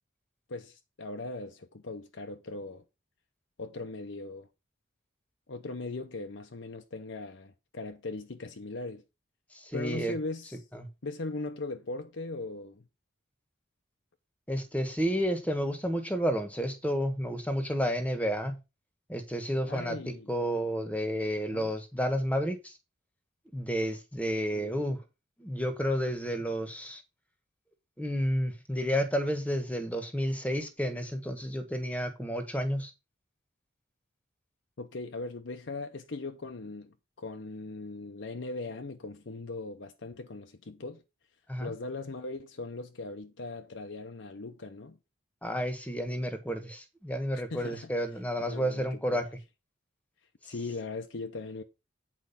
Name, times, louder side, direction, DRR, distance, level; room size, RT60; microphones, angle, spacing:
voice 1, 0.5-2.8 3.6-4.5 5.5-9.0 9.7-10.6 11.0-12.8 19.7-20.3 21.5-21.7 24.5-24.9 34.8-41.0 41.6-45.0 47.3-47.9 48.4-49.3 50.4-51.6, left 3 dB, 70° left, 0.7 m, -39 dB
voice 2, 9.5-10.1 10.7-10.9 14.5-18.6 19.1-22.7 23.5-25.0 25.4-27.0 28.0-32.9 41.5-41.7 45.4-49.3, equal, 5° left, 1.3 m, -31 dB
8.6 x 4.6 x 5.6 m
head